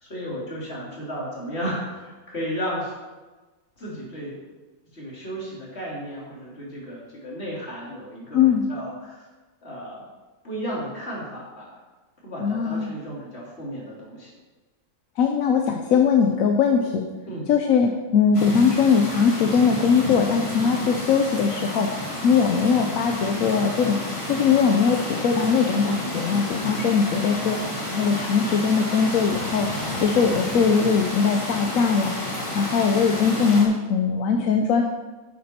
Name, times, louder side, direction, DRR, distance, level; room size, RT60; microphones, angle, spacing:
voice 1, 0.0-2.9 3.8-4.4 4.9-8.4 8.7-9.3 9.6-10.0 10.4-11.8 12.2-14.3 17.3-17.4, equal, 40° left, -5 dB, 3.1 m, -33 dB
voice 2, 8.3-8.7 12.4-12.9 15.2-17.1 17.5-21.9 22.2-24.0 24.3-27.6 27.9-29.7 30.0-32.2 32.5-34.8, left 6 dB, 60° left, 3 dB, 1.0 m, -20 dB
sound 1, 18.3-33.6, left 1 dB, 20° left, 1.8 m, -30 dB
9.3 x 8.7 x 4.3 m, 1.2 s
omnidirectional pair, 1.8 m